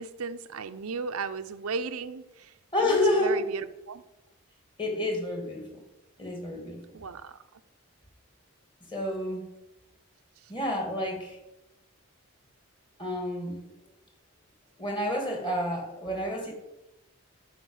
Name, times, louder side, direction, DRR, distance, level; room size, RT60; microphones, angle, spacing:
voice 1, 0.0-2.5 2.8-4.0 6.9-7.4, right 4 dB, 90° right, 10 dB, 0.6 m, -35 dB
voice 2, 2.7-3.5 4.8-5.8 6.2-6.8 8.9-9.5 10.5-11.4 13.0-13.6 14.8-16.5, left 1 dB, 20° left, 1 dB, 2.3 m, -29 dB
12.0 x 5.1 x 7.2 m, 0.95 s
head